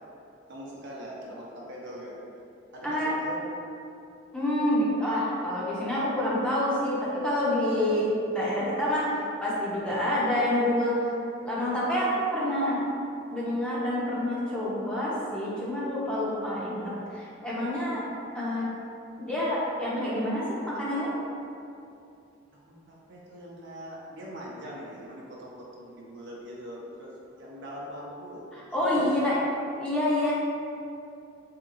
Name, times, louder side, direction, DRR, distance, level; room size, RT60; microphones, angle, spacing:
voice 1, 0.5-2.1 2.7-3.5 22.5-29.3 30.3-30.4, equal, 60° right, -4 dB, 0.6 m, -42 dB
voice 2, 4.3-9.1 9.4-11.1 11.4-12.8 13.3-18.1 18.3-18.7 19.2-21.1 28.5-29.4 29.8-30.3, left 1 dB, 5° left, -8 dB, 0.6 m, -27 dB
3.8 x 2.8 x 2.5 m, 2.6 s
head